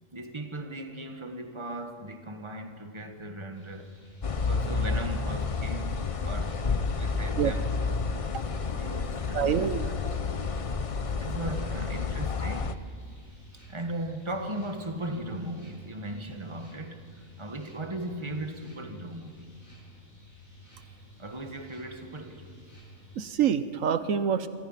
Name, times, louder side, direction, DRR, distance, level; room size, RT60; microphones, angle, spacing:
voice 1, 0.1-3.9 4.4-8.1 8.4-8.5 8.7-10.0 11.1-12.7 13.7-19.5 21.2-22.5, right 1 dB, 20° right, 1.5 m, -38 dB
sound 1, 3.5-23.2, equal, 90° left, 5.7 m, -52 dB
sound 2, 4.2-12.7, left 4 dB, 35° left, 0.5 m, -30 dB
voice 2, 9.3-9.9 23.2-24.5, right 8 dB, 75° right, 1.2 m, -26 dB
26.5 x 24.5 x 5.8 m
omnidirectional pair, 1.4 m